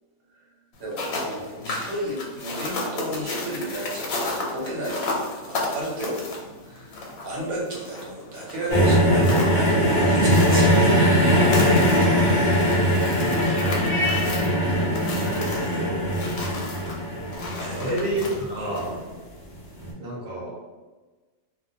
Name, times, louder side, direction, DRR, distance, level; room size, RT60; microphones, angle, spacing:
sound 1, 0.7-19.0, left 2 dB, 80° left, 1.0 m, -34 dB
voice 1, 0.8-6.9 7.2-11.1 12.0-12.3 12.9-13.2 17.6-17.9 18.6-19.0, right 1 dB, 80° right, -3 dB, 1.2 m, -33 dB
sound 2, 8.7-18.9 19.8-19.9, equal, 50° left, 0.5 m, -21 dB
voice 2, 11.0-11.9 13.3-14.0 15.2-16.6 17.7-18.9 20.0-20.5, equal, 50° right, -5 dB, 1.0 m, -31 dB
2.4 x 2.2 x 2.7 m, 1.3 s
omnidirectional pair, 1.5 m